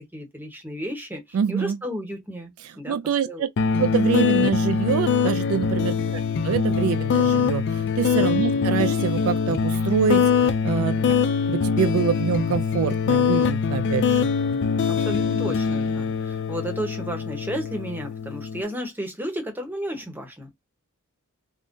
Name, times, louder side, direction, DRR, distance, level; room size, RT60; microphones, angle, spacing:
voice 1, 0.1-2.5 2.8-3.0 3.2-3.5 5.8-6.1 8.2-8.4 10.7-11.2 14.9-20.6, equal, 10° right, 0.8 m, -33 dB
voice 2, 1.3-1.8 2.9-3.5 3.8-11.0 11.4-14.3, right 7 dB, 70° right, 0.3 m, -25 dB
sound 1, 3.6-18.6, left 6 dB, 55° left, 0.3 m, -23 dB
3.5 x 2.1 x 2.5 m
head